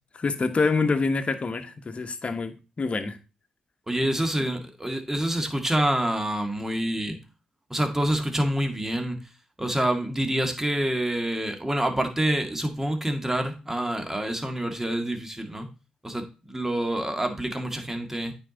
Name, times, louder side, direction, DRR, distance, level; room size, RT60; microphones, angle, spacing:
voice 1, 0.1-3.2, left 4 dB, 45° left, 1.1 m, -26 dB
voice 2, 3.9-7.2 7.7-9.3 9.6-15.7 16.0-18.3, right 1 dB, 15° right, 1.9 m, -27 dB
8.9 x 4.7 x 4.0 m
supercardioid pair, 45°, 3 cm